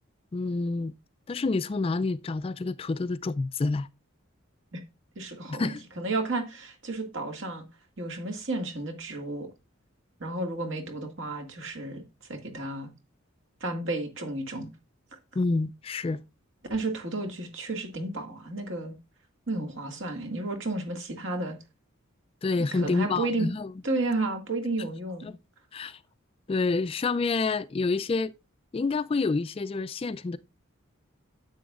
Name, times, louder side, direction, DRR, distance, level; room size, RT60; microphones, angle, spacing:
voice 1, 0.3-0.9 1.3-3.9 5.5-5.8 15.4-16.2 22.4-23.7 25.2-25.3 25.7-26.0 26.5-28.3 28.7-30.4, left 3 dB, 25° left, 0.3 m, -28 dB
voice 2, 5.2-7.6 8.0-9.5 10.2-12.0 12.3-12.9 13.6-14.7 16.7-18.9 19.5-21.6 22.7-23.5 23.8-25.3, right 2 dB, 60° right, 2.0 m, -32 dB
10.0 x 7.8 x 2.4 m
head